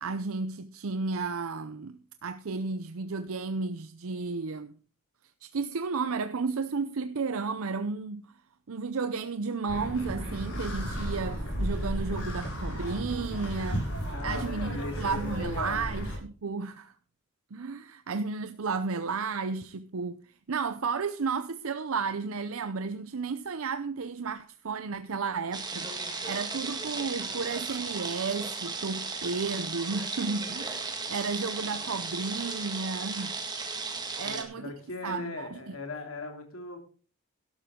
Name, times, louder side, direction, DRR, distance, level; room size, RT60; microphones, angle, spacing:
voice 1, 0.0-4.8 5.4-8.2 8.7-13.9 14.2-16.9 17.5-33.4 34.2-34.7 35.0-35.8, right 4 dB, 70° right, 0.6 m, -33 dB
sound 1, 9.7-16.2, equal, 85° left, 5.7 m, -33 dB
voice 2, 14.1-16.0 34.2-36.8, left 3 dB, 65° left, 2.9 m, -39 dB
sound 2, 25.5-34.4, right 4 dB, 20° right, 1.8 m, -35 dB
12.0 x 12.0 x 3.7 m
head